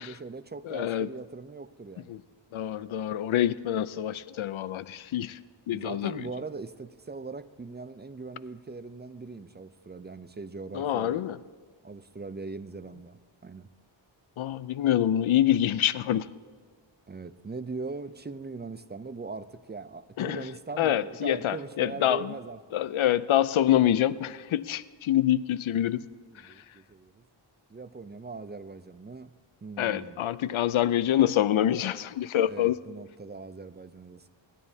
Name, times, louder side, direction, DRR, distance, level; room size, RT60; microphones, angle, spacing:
voice 1, 0.0-2.1 5.7-11.2 11.8-13.7 17.1-22.6 26.3-27.2 27.7-29.3 29.6-30.3 32.5-34.3, right 3 dB, 25° right, 13 dB, 0.4 m, -40 dB
voice 2, 0.7-1.1 2.1-2.2 2.5-5.4 5.7-6.2 10.7-11.4 14.4-16.3 20.2-20.5 20.8-22.3 22.7-26.0 29.8-32.8, left 11 dB, 85° left, 17 dB, 0.5 m, -26 dB
26.0 x 11.0 x 2.7 m, 1.5 s
wide cardioid pair, 95°, 47 cm